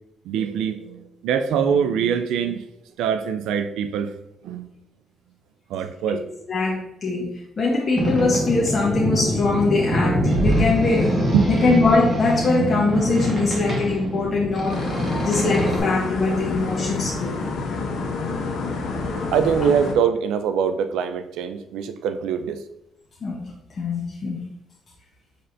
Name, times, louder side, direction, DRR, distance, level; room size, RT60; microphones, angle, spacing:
voice 1, 0.2-2.6 3.0-4.1 4.4-4.7 5.7-6.3 11.3-11.5 19.3-22.6, right 7 dB, 90° right, 10 dB, 0.4 m, -23 dB
voice 2, 6.5-11.2 11.5-17.4 23.2-23.4 23.8-24.4, left 3 dB, 40° left, -3 dB, 0.8 m, -22 dB
Boat Water vehicle, 8.0-15.8, equal, 30° right, 1.4 m, -24 dB
sound 1, 14.7-19.9, left 3 dB, 75° left, 0.7 m, -28 dB
5.5 x 3.3 x 2.6 m, 0.84 s
cardioid pair, 90°, 0 cm